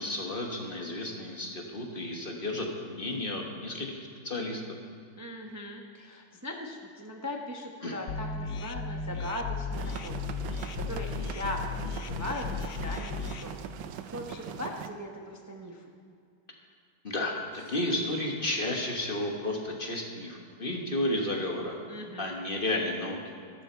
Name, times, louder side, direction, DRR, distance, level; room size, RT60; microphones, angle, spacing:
voice 1, 0.0-4.0 4.2-4.6 7.8-7.9 17.0-17.3 17.7-21.7 22.2-23.2, left 1 dB, 30° left, 1 dB, 1.3 m, -32 dB
voice 2, 5.2-10.4 10.9-13.7 14.1-15.9 21.9-22.3, left 1 dB, 25° right, 1 dB, 0.4 m, -39 dB
sound 1, 8.1-13.4, left 5 dB, 65° left, 1.1 m, -35 dB
sound 2, 9.7-14.9, right 9 dB, 75° right, 1.3 m, -41 dB
sound 3, 17.5-19.1, right 1 dB, 50° left, 4.1 m, -53 dB
13.5 x 12.5 x 4.5 m, 2.4 s
omnidirectional pair, 2.2 m